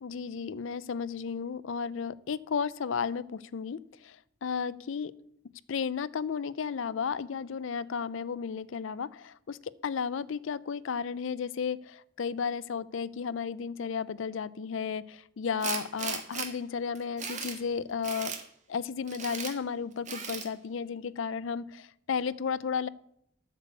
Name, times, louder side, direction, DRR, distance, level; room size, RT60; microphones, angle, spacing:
voice 1, 0.0-5.1 5.7-18.3 18.7-22.9, left 6 dB, 75° left, 19 dB, 0.4 m, -33 dB
Tools, 15.6-16.5 17.0-17.6 18.0-18.4 19.1-19.5 20.1-20.5, right 6 dB, 35° right, 1.4 m, -36 dB
8.2 x 7.1 x 8.2 m, 0.74 s
head